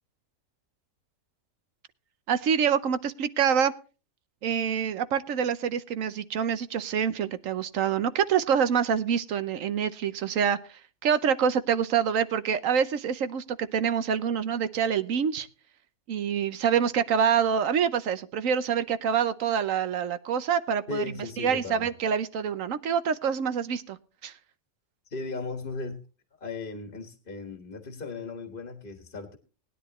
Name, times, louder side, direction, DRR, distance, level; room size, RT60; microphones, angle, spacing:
voice 1, 2.3-3.7 4.4-10.6 11.0-15.5 16.1-21.1 21.4-24.0 24.2-24.3, right 7 dB, 80° right, 12 dB, 1.2 m, -26 dB
voice 2, 20.9-21.9 25.1-26.0 26.4-29.4, left 3 dB, 40° left, 5 dB, 1.7 m, -37 dB
19.5 x 10.5 x 3.0 m, 0.34 s
omnidirectional pair, 1.4 m